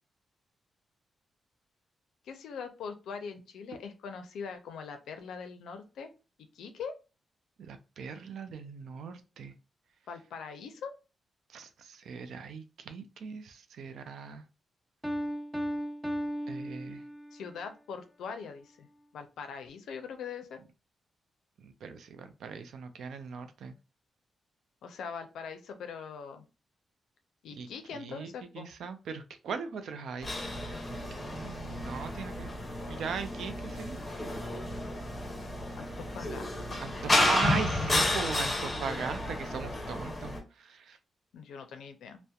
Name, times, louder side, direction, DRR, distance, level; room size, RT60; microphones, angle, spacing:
voice 1, 2.3-6.1 6.5-6.9 10.1-10.9 17.3-18.9 19.1-20.6 24.8-26.4 27.4-28.7 35.8-36.8 41.3-42.2, left 6 dB, 90° left, 0.4 m, -42 dB
voice 2, 7.6-9.5 11.5-14.4 16.5-17.0 21.6-23.7 27.5-30.3 30.9-34.0 36.8-40.3 40.6-41.0, right 6 dB, 80° right, 0.3 m, -39 dB
Piano, 15.0-17.5, equal, 10° right, 0.4 m, -35 dB
sound 1, 30.2-40.4, left 1 dB, 25° left, 0.7 m, -32 dB
2.7 x 2.0 x 2.3 m
cardioid pair, 75°, 0 cm